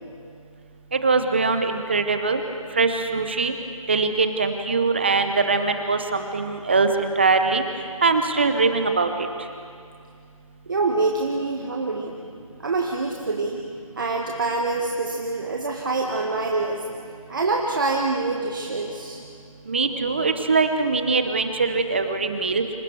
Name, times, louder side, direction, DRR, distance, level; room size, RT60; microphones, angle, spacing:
voice 1, 0.9-2.4 2.8-3.5 3.9-7.6 8.0-9.1 19.7-22.6, right 4 dB, 20° right, 7 dB, 0.8 m, -22 dB
voice 2, 10.7-12.2 12.6-13.6 14.0-16.8 17.3-19.2, right 3 dB, 35° right, 0 dB, 1.7 m, -25 dB
28.5 x 26.5 x 4.7 m, 2.3 s
figure-of-eight pair, 165°, 18 cm